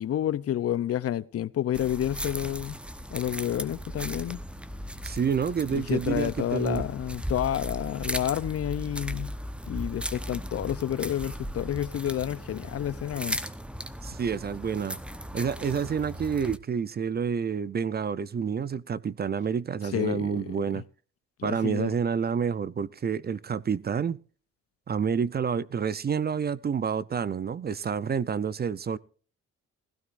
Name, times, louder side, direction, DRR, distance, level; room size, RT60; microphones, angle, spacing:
voice 1, 0.0-2.8 3.1-4.4 5.7-9.3 9.7-13.4 19.9-20.5 20.7-20.8 21.4-21.9, left 11 dB, 50° left, 0.6 m, -29 dB
sound 1, 1.7-16.6, equal, 5° right, 0.9 m, -37 dB
voice 2, 5.0-6.9 14.0-15.0 15.3-20.8 21.4-24.2 24.9-29.0, right 6 dB, 35° right, 0.6 m, -29 dB
16.5 x 16.0 x 2.5 m
cardioid pair, 90°, 30 cm